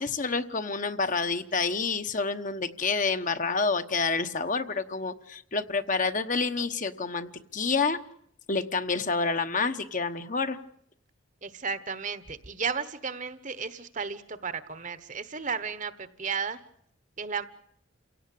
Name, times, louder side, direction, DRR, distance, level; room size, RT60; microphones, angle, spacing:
voice 1, 0.0-8.0 8.5-10.6, left 4 dB, 40° left, 8 dB, 1.1 m, -28 dB
voice 2, 11.4-16.6 17.2-17.5, right 5 dB, 35° right, 13 dB, 1.2 m, -34 dB
28.5 x 17.5 x 8.4 m, 0.70 s
head